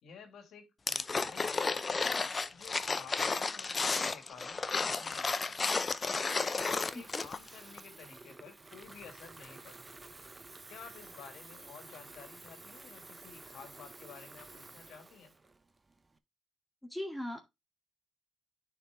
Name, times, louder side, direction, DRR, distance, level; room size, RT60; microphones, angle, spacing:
voice 1, 0.0-2.1 2.5-5.6 6.0-9.8 10.7-15.3, left 6 dB, 75° left, 1.9 m, -52 dB
sound 1, 0.9-7.5 7.8-7.9, left 4 dB, 30° left, 0.6 m, -32 dB
Water tap faucet / Fill (with liquid), 5.9-16.2, right 3 dB, 20° right, 0.8 m, -52 dB
voice 2, 16.9-17.4, left 1 dB, 5° left, 2.0 m, -39 dB
9.8 x 4.7 x 3.4 m
cardioid pair, 90°, 0 cm